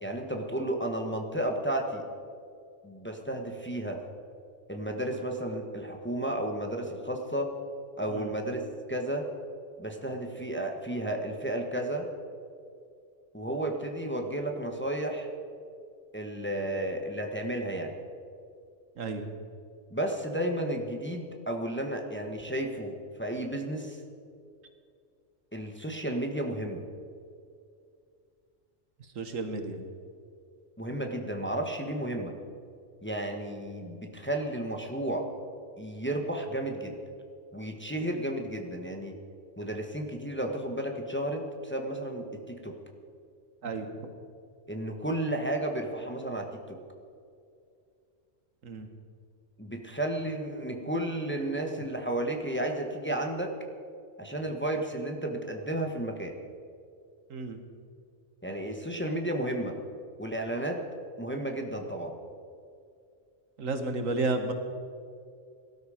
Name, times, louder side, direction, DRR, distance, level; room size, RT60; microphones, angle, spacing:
voice 1, 0.0-2.0 2.8-4.0 4.7-7.5 8.0-8.6 8.9-9.3 9.8-12.1 13.3-15.3 16.1-17.9 19.9-24.0 25.5-26.8 30.8-32.3 33.0-35.2 35.8-36.9 37.5-39.1 39.6-42.3 42.6-42.7 44.7-46.8 49.6-53.5 54.2-56.3 58.4-59.7 60.2-60.8 61.2-62.2, right 1 dB, 10° left, 3 dB, 1.2 m, -32 dB
voice 2, 19.0-19.3 29.2-29.8 43.6-43.9 48.6-48.9 57.3-57.6 63.6-64.5, right 3 dB, 80° right, 6 dB, 1.7 m, -32 dB
18.0 x 12.5 x 5.0 m, 2.4 s
omnidirectional pair, 1.3 m